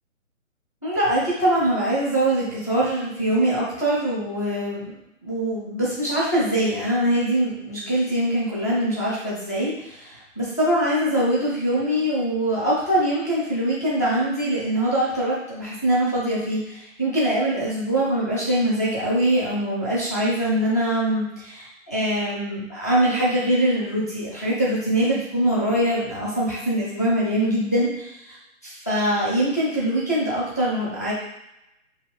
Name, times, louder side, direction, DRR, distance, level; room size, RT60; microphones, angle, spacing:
voice 1, 0.8-28.4 28.6-31.1, right 1 dB, 15° left, -8 dB, 0.5 m, -23 dB
5.4 x 2.5 x 3.3 m, 0.88 s
figure-of-eight pair, 135°, 40 cm